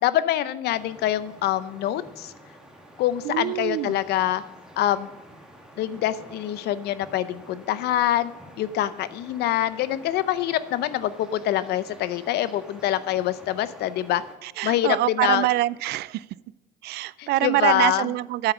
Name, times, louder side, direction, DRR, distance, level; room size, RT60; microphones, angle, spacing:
voice 1, 0.0-2.3 3.0-4.4 4.8-5.1 5.8-8.3 8.6-14.2 14.6-15.5 17.2-18.1, left 12 dB, 75° left, 15 dB, 0.7 m, -25 dB
sound 1, 0.7-14.4, right 1 dB, 5° right, 2.0 m, -48 dB
voice 2, 3.2-4.0 14.4-16.2 16.8-18.5, right 16 dB, 75° right, 20 dB, 0.4 m, -25 dB
8.9 x 7.3 x 6.1 m, 1.1 s
cardioid pair, 110°, 17 cm